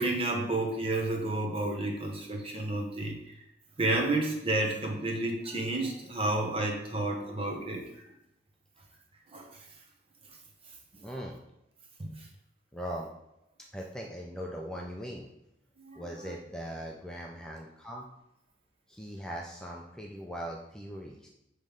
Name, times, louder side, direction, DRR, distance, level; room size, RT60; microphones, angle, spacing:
voice 1, 0.0-3.4 3.8-7.8 9.3-9.7 12.0-12.3 15.9-16.3, right 2 dB, 30° right, 1 dB, 1.1 m, -31 dB
voice 2, 11.0-11.4 12.7-13.1 13.7-15.3 16.0-18.1 18.9-21.3, equal, 5° left, -1 dB, 0.5 m, -40 dB
7.5 x 3.2 x 5.1 m, 0.88 s
head